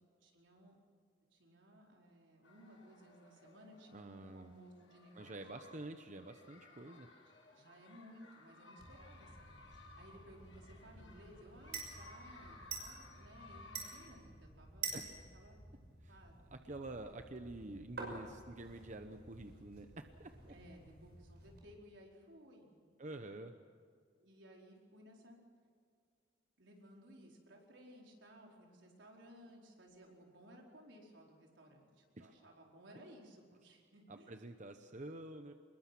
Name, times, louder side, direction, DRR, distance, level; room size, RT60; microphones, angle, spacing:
voice 1, 0.2-0.8 1.3-5.4 7.5-9.6 10.0-15.6 16.1-16.3 20.5-23.3 24.2-25.4 26.6-34.4, equal, 85° right, -1 dB, 4.8 m, -59 dB
sound 1, 2.4-14.1, left 2 dB, 80° left, 7.9 m, -60 dB
voice 2, 3.9-4.5 5.2-7.1 14.9-15.0 16.0-16.2 16.5-20.5 23.0-23.5 32.1-32.3 34.1-35.5, right 2 dB, 40° right, 7 dB, 0.9 m, -48 dB
sound 2, 8.8-21.6, right 5 dB, 60° right, 6.0 m, -50 dB
25.5 x 21.5 x 6.1 m, 2.1 s
head